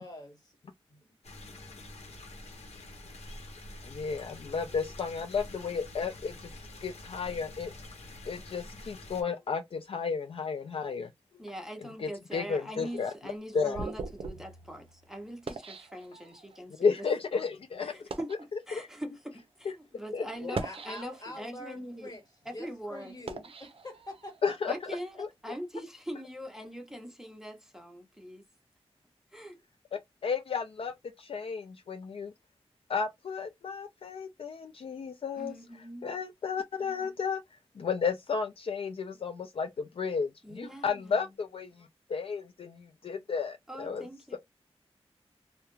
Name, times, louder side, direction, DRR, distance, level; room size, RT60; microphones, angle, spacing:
voice 1, 0.0-0.4 20.4-22.2 22.5-24.8, left 2 dB, 35° left, 1.3 m, -45 dB
sound 1, 1.2-9.2, left 1 dB, 90° left, 0.8 m, -47 dB
voice 2, 3.8-6.5 6.8-7.7 8.3-11.1 12.0-13.1 13.5-13.8 16.8-17.9 18.7-18.8 20.1-20.6 24.4-24.7 25.2-25.3 30.2-32.3 32.9-35.5 36.0-37.4 37.8-44.0, left 5 dB, 60° left, 0.4 m, -33 dB
voice 3, 11.4-16.9 17.8-22.1 22.4-23.4 24.7-28.4 29.3-29.6 35.3-36.1 40.4-41.2 43.7-44.4, equal, 5° right, 0.7 m, -42 dB
sound 2, 12.9-16.6 17.3-17.4 17.9-18.5 19.3-19.4 20.3-21.4 22.0-24.5, right 4 dB, 60° right, 0.5 m, -42 dB
2.3 x 2.1 x 3.0 m
wide cardioid pair, 90°, 11 cm